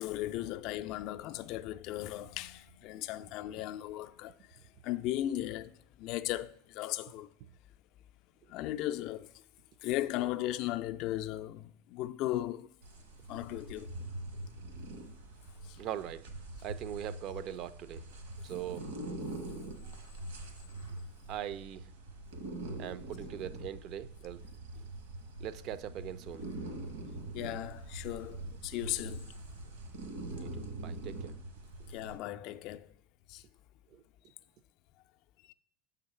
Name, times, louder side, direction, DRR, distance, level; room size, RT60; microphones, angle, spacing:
voice 1, 0.0-7.3 8.5-9.4 9.8-12.7 13.3-13.9 15.6-15.8 27.3-29.4 31.9-32.9 33.3-33.4 35.5-35.6, left 14 dB, 55° left, 0.3 m, -37 dB
sound 1, 12.8-32.2, right 2 dB, 80° right, 1.4 m, -44 dB
voice 2, 15.8-16.3 16.6-18.0 18.4-18.9 21.3-21.8 22.8-24.4 25.4-26.4 30.4-31.3 33.9-34.0, right 11 dB, 50° right, 0.4 m, -41 dB
7.0 x 3.9 x 5.4 m
hypercardioid pair, 100°, 0 cm